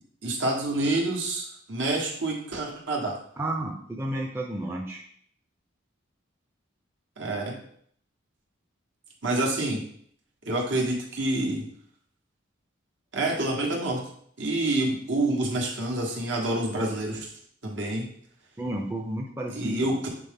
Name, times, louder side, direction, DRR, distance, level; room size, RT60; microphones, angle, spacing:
voice 1, 0.2-3.2 7.2-7.6 9.2-9.8 10.4-11.7 13.1-14.0 14.4-17.3 17.6-18.1 19.5-20.1, right 2 dB, 65° right, -1 dB, 1.4 m, -27 dB
voice 2, 3.4-5.0 18.6-20.0, right 1 dB, 10° right, -1 dB, 0.6 m, -32 dB
7.4 x 3.7 x 3.7 m, 0.63 s
head